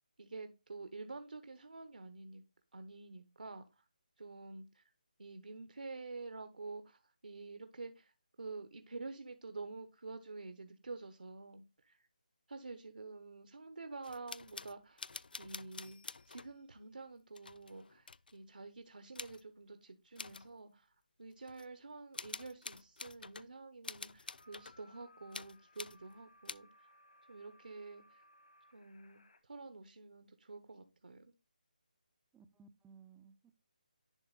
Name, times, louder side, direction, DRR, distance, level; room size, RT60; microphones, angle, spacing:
voice 1, 0.2-2.4 2.7-3.8 4.2-4.8 5.2-12.1 12.5-15.1 15.4-16.0 16.3-27.0 27.3-28.2 28.7-31.3, right 3 dB, 80° right, 1.0 m, -49 dB
sound 1, 14.0-16.5 17.3-18.4 19.1-19.4 20.2-20.5 21.5-21.7 22.1-23.5 23.8-24.8 25.3-26.0 26.4-26.6, left 4 dB, 85° left, 0.3 m, -48 dB
sound 2, 24.4-29.4, left 1 dB, 65° left, 1.3 m, -64 dB
voice 2, 32.3-33.5, right 5 dB, 5° right, 0.3 m, -60 dB
10.5 x 3.6 x 4.0 m
figure-of-eight pair, 165°, 5 cm